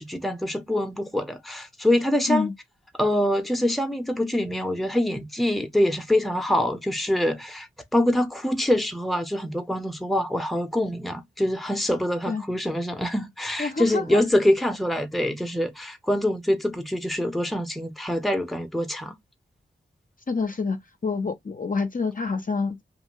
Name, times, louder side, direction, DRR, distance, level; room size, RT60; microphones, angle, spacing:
voice 1, 0.0-2.5 3.0-19.2, left 1 dB, ahead, 0.7 m, -25 dB
voice 2, 13.6-14.2 20.3-22.8, left 4 dB, 40° left, 0.6 m, -27 dB
2.6 x 2.5 x 3.0 m
cardioid pair, 45°, 21 cm